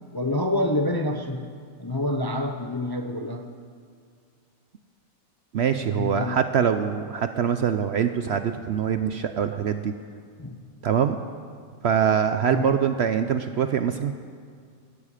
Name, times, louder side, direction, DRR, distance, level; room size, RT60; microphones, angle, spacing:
voice 1, 0.1-1.5 1.8-3.5 5.9-6.4 10.4-10.6 12.4-12.8, left 1 dB, 25° left, 5 dB, 0.5 m, -27 dB
voice 2, 5.5-9.9 10.8-11.2 11.8-14.1, right 8 dB, 60° right, 9 dB, 0.7 m, -24 dB
17.0 x 13.0 x 5.0 m, 2.2 s
omnidirectional pair, 1.5 m